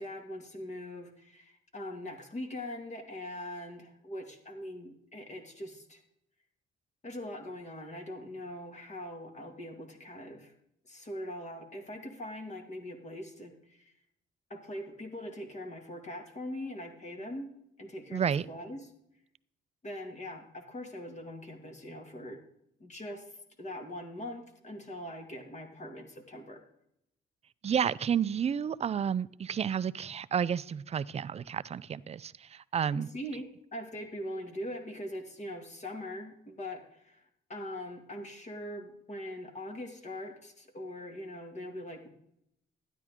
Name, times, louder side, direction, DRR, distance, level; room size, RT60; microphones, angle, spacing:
voice 1, 0.0-6.0 7.0-10.5 10.8-13.9 14.5-17.5 17.8-18.9 19.8-22.4 22.8-26.6 32.9-33.5 33.7-37.2 37.5-42.1, left 1 dB, 35° left, 2.1 m, -42 dB
voice 2, 18.1-18.5 27.6-33.1, right 8 dB, 30° right, 0.4 m, -31 dB
12.5 x 10.0 x 3.6 m
cardioid pair, 90°, 20 cm